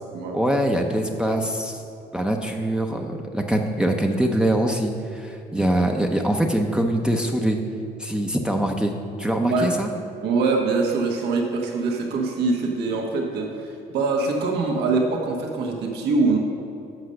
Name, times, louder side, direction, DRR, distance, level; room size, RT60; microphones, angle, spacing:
voice 1, 0.3-1.8 2.1-7.6 8.0-8.9 9.2-9.9, right 1 dB, 5° right, 2 dB, 0.6 m, -23 dB
voice 2, 9.4-9.7 10.2-16.4, right 3 dB, 75° right, 0 dB, 1.3 m, -23 dB
7.8 x 5.5 x 6.4 m, 2.8 s
cardioid pair, 110°, 17 cm